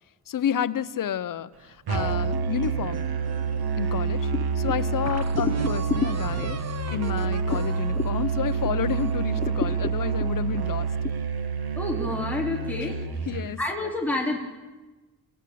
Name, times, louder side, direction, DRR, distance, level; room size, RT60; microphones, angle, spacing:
voice 1, 0.3-3.1 3.8-6.6 6.9-10.9 12.8-12.9 13.2-13.9, left 9 dB, 60° left, 13 dB, 0.8 m, -30 dB
Musical instrument, 1.9-13.6, right 5 dB, 85° right, 1.6 m, -28 dB
sound 1, 2.3-3.9 4.4-4.5 5.1-9.2, right 4 dB, 45° right, 1.6 m, -37 dB
sound 2, 4.3-8.9 9.3-11.1, left 5 dB, 25° left, 0.6 m, -33 dB
voice 2, 11.8-12.9 13.6-14.4, left 2 dB, 5° left, -1 dB, 3.4 m, -28 dB
26.5 x 15.0 x 8.6 m, 1.2 s
wide cardioid pair, 140°, 36 cm